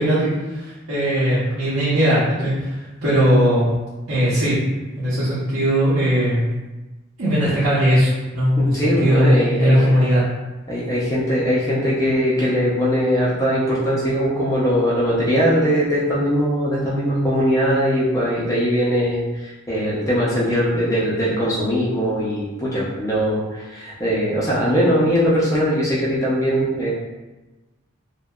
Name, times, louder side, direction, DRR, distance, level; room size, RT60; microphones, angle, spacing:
voice 1, 0.0-3.7 4.1-4.5 4.9-6.4 7.2-8.5 9.0-10.2, equal, 85° right, -11 dB, 0.7 m, -18 dB
voice 2, 8.6-10.0 10.7-26.9, equal, 15° left, -7 dB, 0.4 m, -20 dB
2.7 x 2.1 x 2.2 m, 1.1 s
head